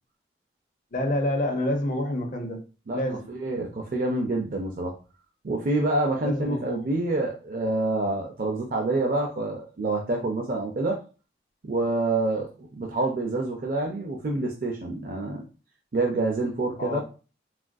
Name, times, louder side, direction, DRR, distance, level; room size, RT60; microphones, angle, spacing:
voice 1, 0.9-2.6 2.9-3.3 6.2-6.9 16.8-17.0, left 1 dB, 45° left, 0.5 m, -28 dB
voice 2, 3.3-5.0 5.4-11.0 11.6-15.5 15.9-17.0, right 2 dB, 50° right, 0.4 m, -27 dB
3.5 x 2.4 x 2.2 m
head